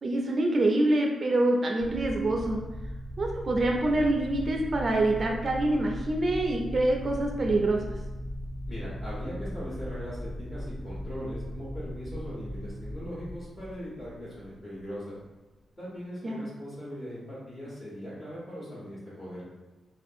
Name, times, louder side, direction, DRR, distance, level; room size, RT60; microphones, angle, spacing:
voice 1, 0.0-2.6 3.2-7.9 16.2-16.5, right 2 dB, 45° right, 1 dB, 0.3 m, -26 dB
sound 1, 1.8-14.8, equal, 5° left, 0.9 m, -38 dB
voice 2, 8.7-15.2 15.8-19.4, equal, 40° left, -10 dB, 1.1 m, -40 dB
2.4 x 2.4 x 2.6 m, 1.1 s
cardioid pair, 85°, 0 cm